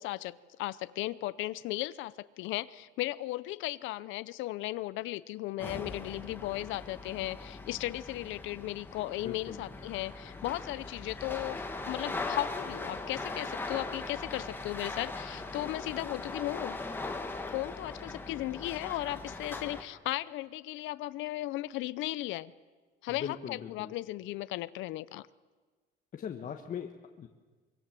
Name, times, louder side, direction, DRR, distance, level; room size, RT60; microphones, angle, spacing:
voice 1, 0.0-16.8 17.5-22.5 23.0-25.3, left 17 dB, 90° left, 16 dB, 0.7 m, -36 dB
sound 1, 5.6-19.8, left 3 dB, 10° left, 2.0 m, -40 dB
voice 2, 9.2-9.6 23.1-23.9 26.1-27.3, left 8 dB, 45° left, 4 dB, 1.4 m, -40 dB
24.5 x 23.0 x 7.6 m, 1.4 s
cardioid pair, 150°, 19 cm